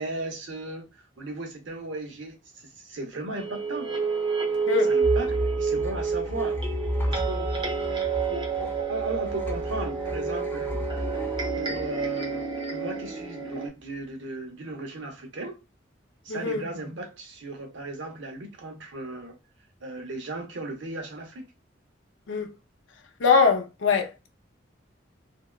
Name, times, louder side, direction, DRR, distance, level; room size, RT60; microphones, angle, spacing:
voice 1, 0.0-3.9 4.9-6.6 7.1-7.5 8.3-10.8 11.6-15.6 16.2-19.4 19.8-21.5, right 2 dB, 85° right, 0.7 m, -36 dB
sound 1, 3.4-13.7, right 5 dB, 25° right, 0.8 m, -29 dB
voice 2, 4.7-5.0 16.3-16.6 22.3-22.5 23.2-24.3, left 5 dB, 90° left, 0.5 m, -22 dB
sound 2, 5.0-12.5, equal, 10° left, 0.3 m, -33 dB
2.6 x 2.1 x 2.2 m
head